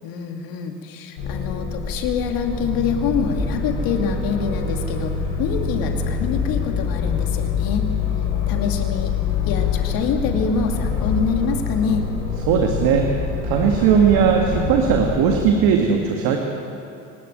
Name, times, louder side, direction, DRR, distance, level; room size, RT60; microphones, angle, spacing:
voice 1, 0.0-7.9 8.4-9.1 9.4-12.1, left 6 dB, 65° left, 4 dB, 2.5 m, -25 dB
sound 1, 1.2-15.4, left 6 dB, 85° left, 5.5 m, -25 dB
voice 2, 12.5-13.1 13.4-16.4, right 7 dB, 70° right, 2 dB, 2.0 m, -18 dB
24.0 x 12.0 x 9.2 m, 2.6 s
supercardioid pair, 85°, 38 cm